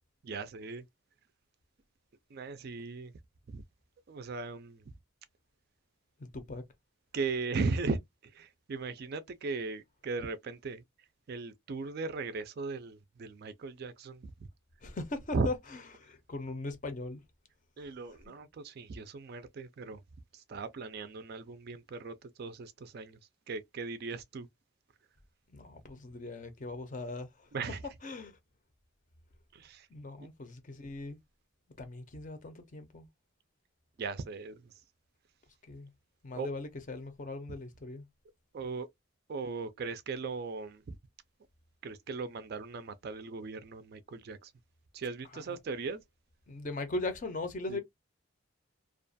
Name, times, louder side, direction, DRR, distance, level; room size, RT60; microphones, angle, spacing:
voice 1, 0.2-0.8 2.3-3.1 3.5-3.6 4.1-4.9 7.1-10.8 11.3-14.3 15.3-15.5 17.8-20.0 20.3-23.2 23.5-24.5 27.5-27.8 29.5-29.9 30.2-30.3 34.0-34.7 36.3-36.5 38.5-38.9 39.3-41.0 41.8-44.5 44.9-46.0 47.7-47.8, right 4 dB, 45° right, 0.3 m, -38 dB
voice 2, 6.2-6.6 14.8-15.5 16.0-17.2 17.8-17.9 25.5-27.5 28.0-28.4 29.9-31.2 31.8-33.1 35.7-35.9 36.2-38.1 45.3-45.6 46.5-47.8, left 2 dB, 35° left, 0.5 m, -39 dB
2.4 x 2.2 x 2.5 m
head